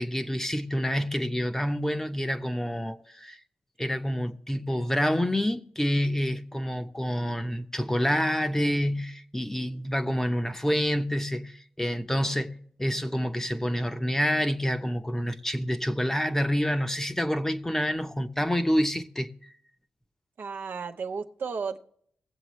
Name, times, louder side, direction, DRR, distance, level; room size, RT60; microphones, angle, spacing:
voice 1, 0.0-3.4 3.8-19.3, equal, 10° left, 0.9 m, -28 dB
voice 2, 20.4-21.8, right 5 dB, 70° right, 0.9 m, -33 dB
20.0 x 7.6 x 3.2 m
cardioid pair, 70°, 4 cm